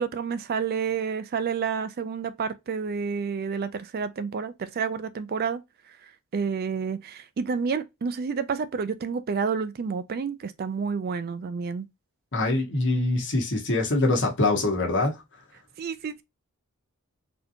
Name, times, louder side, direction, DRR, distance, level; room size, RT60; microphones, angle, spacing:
voice 1, 0.0-5.6 6.3-11.9 15.8-16.2, right 5 dB, 45° right, 0.3 m, -29 dB
voice 2, 12.3-15.1, left 2 dB, 55° left, 1.3 m, -24 dB
4.1 x 2.9 x 2.6 m
head